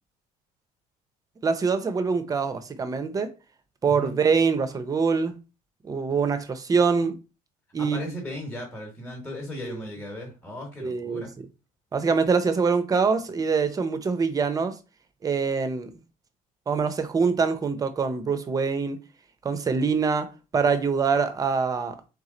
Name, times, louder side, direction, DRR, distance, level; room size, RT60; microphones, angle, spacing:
voice 1, 1.4-3.3 3.8-5.4 5.8-7.1 7.7-8.1 9.6-9.8 10.8-11.3 11.9-14.8 15.2-15.9 16.7-19.0 19.4-22.0, right 5 dB, 25° right, 0.6 m, -24 dB
voice 2, 7.8-11.3, left 1 dB, 10° left, 1.1 m, -37 dB
3.6 x 3.1 x 3.8 m
cardioid pair, 135°, 16 cm